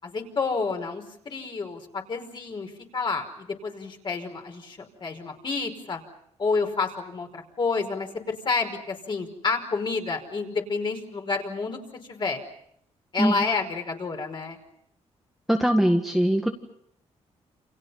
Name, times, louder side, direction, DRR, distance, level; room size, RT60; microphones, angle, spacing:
voice 1, 0.0-6.0 6.4-11.8 12.1-12.4 13.1-14.6, left 4 dB, 40° left, 3 dB, 5.2 m, -29 dB
voice 2, 15.5-16.5, equal, ahead, 3 dB, 1.8 m, -21 dB
29.5 x 28.5 x 5.8 m, 0.71 s
cardioid pair, 120°, 12 cm